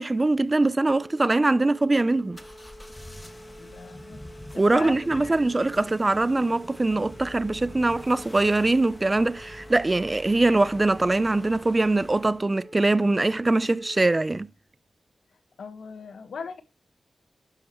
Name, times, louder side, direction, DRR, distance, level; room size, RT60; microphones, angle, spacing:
voice 1, 0.0-2.4 4.6-14.5, right 2 dB, 30° right, 0.6 m, -22 dB
Telephone, 1.0-14.2, equal, 40° left, 3.4 m, -48 dB
sound 1, 2.3-12.5, left 1 dB, 20° left, 1.8 m, -45 dB
voice 2, 3.6-4.2 4.5-5.4 15.6-16.6, left 5 dB, 85° left, 1.5 m, -39 dB
11.5 x 9.5 x 3.1 m
cardioid pair, 50°, 0 cm